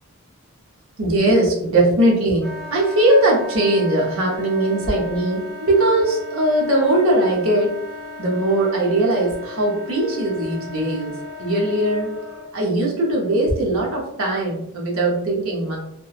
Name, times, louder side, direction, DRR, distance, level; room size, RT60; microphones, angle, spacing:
voice 1, 1.0-7.7 8.2-11.1 11.4-12.1 12.5-15.8, right 1 dB, 75° right, -2 dB, 0.8 m, -20 dB
Wind instrument woodwind instrument, 2.4-12.5, left 2 dB, 60° right, 1.1 m, -36 dB
2.9 x 2.2 x 2.3 m, 0.78 s
head